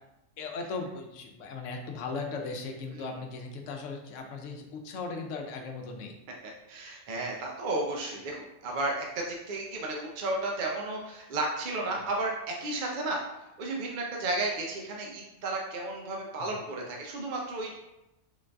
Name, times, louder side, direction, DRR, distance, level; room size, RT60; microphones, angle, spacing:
voice 1, 0.4-6.1 16.4-16.6, left 4 dB, 80° left, 3 dB, 1.0 m, -37 dB
voice 2, 6.7-13.2 13.6-17.7, right 2 dB, 55° right, -1 dB, 0.6 m, -33 dB
3.8 x 2.6 x 3.3 m, 0.95 s
omnidirectional pair, 1.3 m